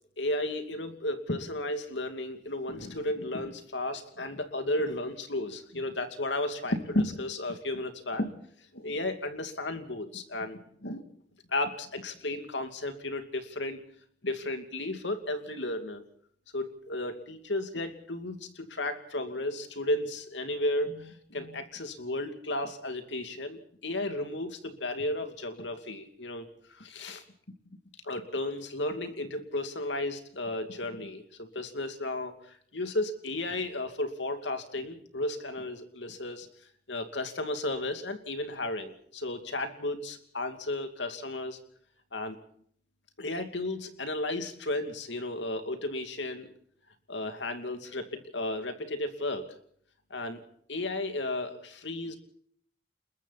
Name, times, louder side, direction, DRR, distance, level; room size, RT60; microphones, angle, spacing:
voice 1, 0.2-8.4 8.7-11.0 11.5-13.8 14.2-16.0 16.5-27.2 28.0-36.5 36.9-41.6 42.1-42.4 43.2-46.5 47.1-49.5 50.1-50.4 50.7-52.2, left 1 dB, 85° left, 7 dB, 2.6 m, -34 dB
29.5 x 21.5 x 4.2 m, 0.62 s
head